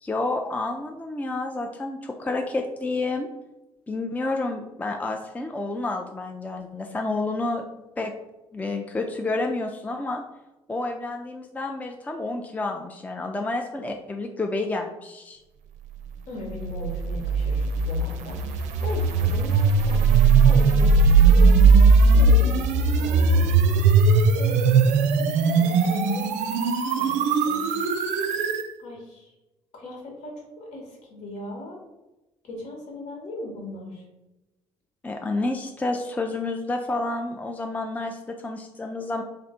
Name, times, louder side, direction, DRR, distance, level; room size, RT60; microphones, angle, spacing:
voice 1, 0.0-3.3 3.9-8.1 8.5-10.2 10.7-15.4 35.0-39.2, left 2 dB, 10° left, 3 dB, 0.4 m, -29 dB
voice 2, 16.3-23.6 23.8-24.7 25.2-26.3 27.0-27.7 28.8-29.3 29.7-31.8 32.4-34.0, left 1 dB, 60° left, -1 dB, 1.5 m, -38 dB
sound 1, 16.5-28.7, right 4 dB, 60° right, 0.5 m, -19 dB
3.2 x 2.5 x 4.2 m, 1.0 s
hypercardioid pair, 55°, 14 cm